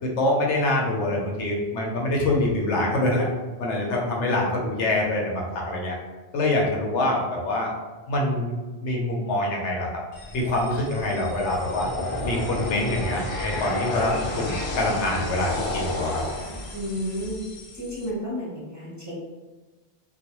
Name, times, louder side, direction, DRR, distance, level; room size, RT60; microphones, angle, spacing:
voice 1, 0.0-3.3 3.6-6.0 6.3-7.7 8.1-8.5 8.8-9.9 10.3-11.9 12.2-16.2, left 1 dB, 90° left, -1 dB, 0.9 m, -25 dB
sound 1, 10.1-18.1, left 2 dB, 55° left, 0.3 m, -32 dB
voice 2, 16.7-17.4 17.7-19.3, equal, 20° right, -9 dB, 0.6 m, -32 dB
2.4 x 2.2 x 2.9 m, 1.3 s
omnidirectional pair, 1.1 m